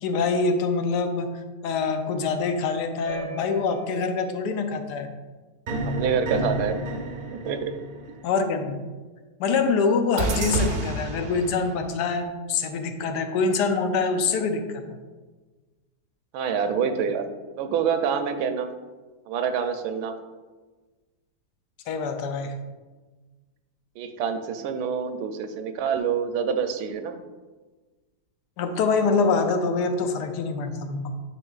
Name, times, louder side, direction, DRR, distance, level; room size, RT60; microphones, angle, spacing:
voice 1, 0.0-1.3 1.6-5.1 8.2-8.8 9.4-15.0 21.9-22.6 28.6-31.1, left 4 dB, 85° left, 7 dB, 1.2 m, -25 dB
sound 1, 3.1-4.1 5.7-8.3 10.2-11.9, right 2 dB, 55° right, 0.6 m, -30 dB
voice 2, 5.8-6.8 7.3-7.7 16.3-17.2 17.6-18.7 19.3-20.1 24.0-27.2, right 7 dB, 80° right, 8 dB, 1.1 m, -26 dB
9.8 x 4.1 x 2.4 m, 1.3 s
omnidirectional pair, 1.7 m